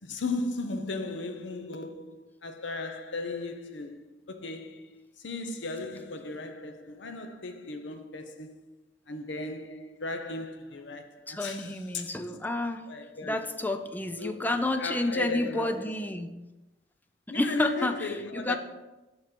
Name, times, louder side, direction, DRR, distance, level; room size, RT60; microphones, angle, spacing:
voice 1, 0.0-8.5 9.1-12.1 12.9-13.4 14.2-14.5 14.8-15.9 17.3-18.6, left 3 dB, 85° left, 0.8 m, -36 dB
voice 2, 11.3-12.8 13.2-16.4 17.3-18.6, left 1 dB, 10° left, 0.4 m, -30 dB
6.1 x 5.6 x 5.2 m
head